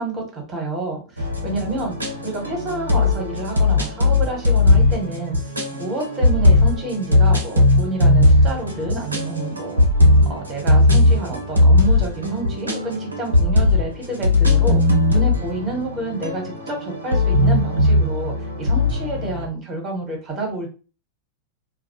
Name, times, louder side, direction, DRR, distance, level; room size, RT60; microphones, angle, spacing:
voice 1, 0.0-2.0 2.2-5.4 5.7-9.8 10.3-14.8 15.1-18.3 18.6-20.7, right 2 dB, 25° right, 0 dB, 1.1 m, -28 dB
sound 1, 1.2-19.5, left 2 dB, 80° right, 0.5 m, -18 dB
2.2 x 2.1 x 2.8 m, 0.34 s
figure-of-eight pair, 90°, 0 cm